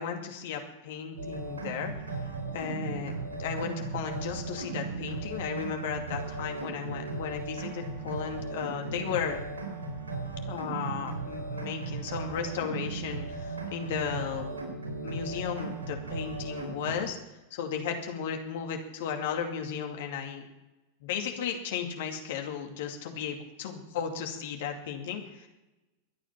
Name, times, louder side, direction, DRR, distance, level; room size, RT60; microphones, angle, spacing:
voice 1, 0.0-2.2 2.5-9.4 10.5-14.5 15.0-17.2 17.5-20.4 21.0-25.5, left 7 dB, 55° left, 3 dB, 2.4 m, -35 dB
sound 1, 1.2-17.0, right 3 dB, 70° right, 4.5 m, -37 dB
23.0 x 9.0 x 5.9 m, 1.0 s
figure-of-eight pair, 90°, 0 cm